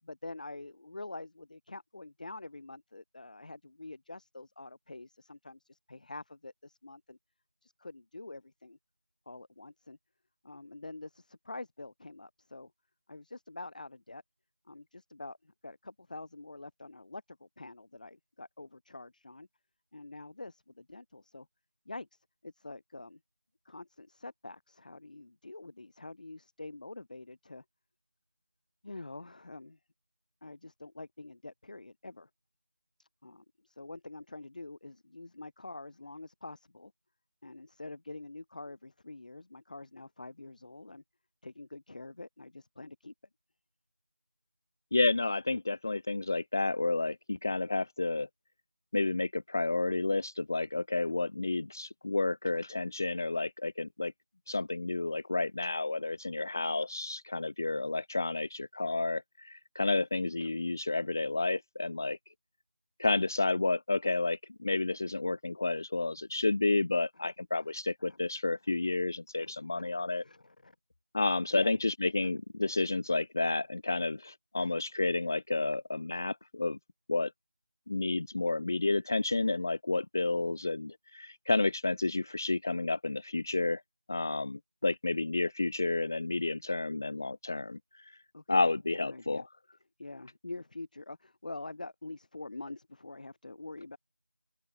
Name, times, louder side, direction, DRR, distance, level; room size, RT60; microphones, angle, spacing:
voice 1, 0.0-7.2 7.6-8.8 9.3-10.0 10.4-12.7 13.1-14.2 14.7-19.5 19.9-21.5 21.9-22.1 22.4-23.2 23.7-27.6 28.8-29.8 30.4-32.3 33.0-36.9 37.4-41.0 41.4-43.1 68.0-68.2 69.4-69.9 70.2-70.7 71.5-71.7 72.2-72.3 74.6-74.7 88.3-88.7 89.0-89.4 90.0-94.0, left 2 dB, 40° left, 7.5 m, -46 dB
voice 2, 44.9-48.3 48.9-54.1 54.5-62.2 63.0-70.2 71.1-76.8 77.1-77.3 77.9-83.8 84.1-88.2 88.5-89.5, left 3 dB, 15° left, 0.5 m, -31 dB
open air
figure-of-eight pair, 175°, 7 cm